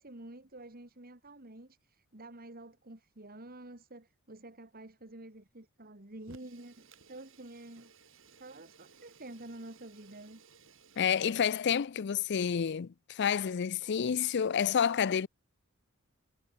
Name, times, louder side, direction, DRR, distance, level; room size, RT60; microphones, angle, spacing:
voice 1, 0.0-7.9 8.3-10.4, right 2 dB, 45° right, 2.5 m, -49 dB
Fire, 6.2-11.8, right 4 dB, 65° right, 7.3 m, -59 dB
voice 2, 11.0-15.3, left 7 dB, 55° left, 0.4 m, -29 dB
head